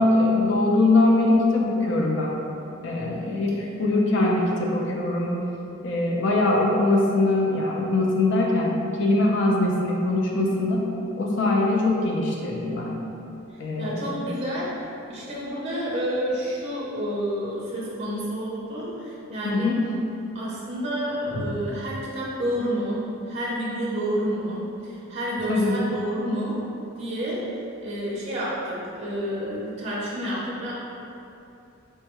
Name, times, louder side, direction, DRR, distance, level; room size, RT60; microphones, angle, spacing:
voice 1, 0.0-2.4 2.8-5.4 5.8-8.7 9.0-10.9 11.2-13.0 13.6-14.2 19.4-19.9 21.3-21.4 25.5-25.8, left 2 dB, 55° left, -2 dB, 0.5 m, -22 dB
voice 2, 13.8-14.7 15.1-19.8 20.3-26.6 27.0-27.4 27.8-30.7, equal, 30° right, -7 dB, 0.5 m, -29 dB
4.5 x 2.2 x 2.9 m, 2.8 s
head